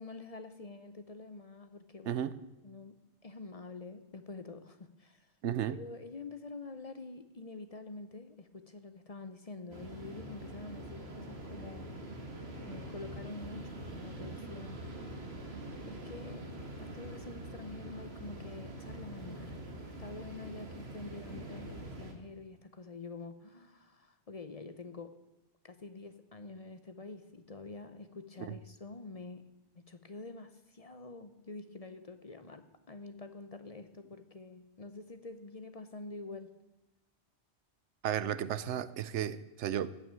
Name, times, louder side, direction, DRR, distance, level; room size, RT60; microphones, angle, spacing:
voice 1, 0.0-2.2 2.6-3.0 3.2-5.3 5.7-12.0 12.7-14.8 15.9-16.5 16.8-25.2 25.6-29.5 29.8-36.6, left 3 dB, 35° left, 0.8 m, -47 dB
voice 2, 5.4-5.8 38.0-39.9, right 10 dB, 80° right, 1.0 m, -33 dB
sound 1, 9.7-22.1, right 1 dB, 65° right, 2.0 m, -44 dB
15.5 x 6.2 x 8.7 m
omnidirectional pair, 1.2 m